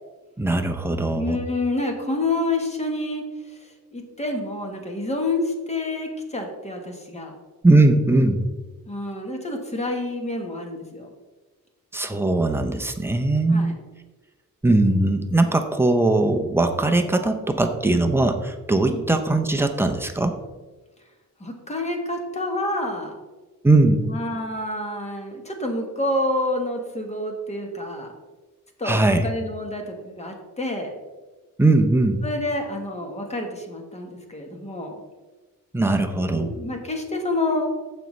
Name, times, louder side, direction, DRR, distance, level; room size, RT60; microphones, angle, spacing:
voice 1, 0.4-1.4 7.6-8.5 11.9-13.8 14.6-20.3 23.6-24.1 28.8-29.3 31.6-32.2 35.7-36.6, right 2 dB, 5° right, 5 dB, 0.5 m, -20 dB
voice 2, 1.1-7.3 8.9-11.1 13.5-13.7 18.9-19.0 21.4-23.2 24.1-28.1 28.8-30.9 32.2-34.9 36.2-37.7, left 2 dB, 20° left, 3 dB, 1.2 m, -28 dB
14.5 x 5.3 x 3.2 m, 1.2 s
wide cardioid pair, 175°, 35 cm